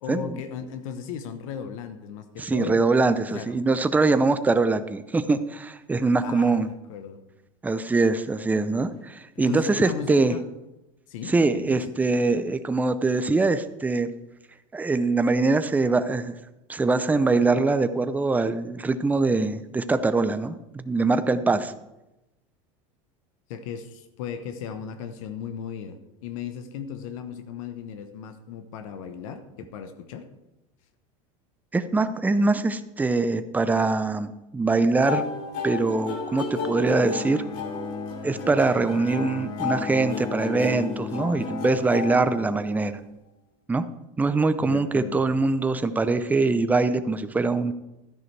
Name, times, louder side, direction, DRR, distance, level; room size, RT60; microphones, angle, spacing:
voice 1, 0.0-2.8 3.3-3.5 6.2-7.2 9.3-10.4 11.1-11.8 23.5-26.0 26.2-30.2 44.6-45.3, left 7 dB, 80° left, 8 dB, 1.0 m, -36 dB
voice 2, 2.4-6.7 7.6-10.4 11.3-14.1 14.7-16.4 16.7-21.7 31.7-35.3 35.6-37.4 38.2-43.0 43.7-43.8 44.2-47.7, right 3 dB, 10° right, 11 dB, 0.6 m, -23 dB
sound 1, 35.0-43.0, left 4 dB, 60° left, 2.9 m, -33 dB
Bowed string instrument, 36.7-42.5, left 6 dB, 25° left, 0.8 m, -37 dB
13.0 x 10.5 x 3.3 m, 0.96 s
supercardioid pair, 125°, 17 cm